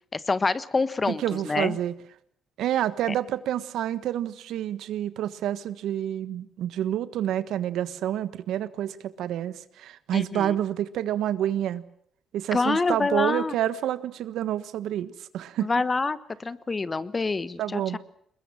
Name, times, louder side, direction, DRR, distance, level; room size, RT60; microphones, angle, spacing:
voice 1, 0.1-1.8 3.1-3.2 10.1-10.6 12.5-13.6 15.6-18.0, left 3 dB, 30° left, 15 dB, 1.3 m, -27 dB
voice 2, 1.2-1.9 2.6-11.8 12.3-15.7 17.6-18.0, right 11 dB, 80° right, 14 dB, 1.4 m, -28 dB
22.5 x 21.0 x 7.4 m, 0.69 s
cardioid pair, 90°, 0 cm